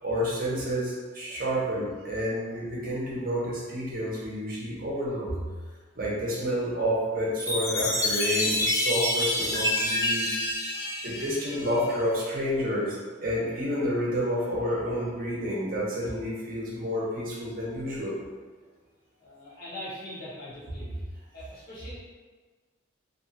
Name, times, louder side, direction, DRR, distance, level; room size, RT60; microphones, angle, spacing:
voice 1, 0.0-5.3 6.0-10.5 10.7-18.1, equal, 45° right, -5 dB, 0.7 m, -29 dB
Chime, 7.4-12.0, left 1 dB, 15° left, 0.4 m, -28 dB
voice 2, 19.2-20.9 21.3-21.9, left 1 dB, 50° left, -7 dB, 0.7 m, -41 dB
2.5 x 2.3 x 2.6 m, 1.4 s
head